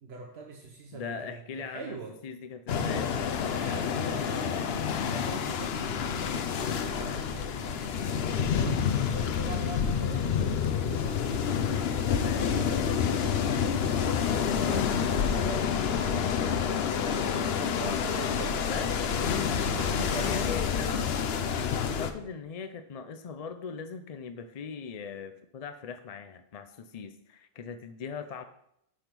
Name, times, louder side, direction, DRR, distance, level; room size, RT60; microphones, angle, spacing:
voice 1, 0.0-2.2 3.5-8.8 9.1-11.6 12.1-14.3 14.9-16.8 17.7-21.1, right 3 dB, 90° right, 1 dB, 1.2 m, -43 dB
voice 2, 0.9-2.0 2.2-3.2 12.1-12.5 14.5-14.9 18.7-18.9 20.2-28.4, left 6 dB, 50° left, 9 dB, 0.5 m, -40 dB
sound 1, 2.7-22.1, left 7 dB, 75° left, 0.9 m, -28 dB
10.0 x 3.5 x 6.0 m, 0.75 s
omnidirectional pair, 1.1 m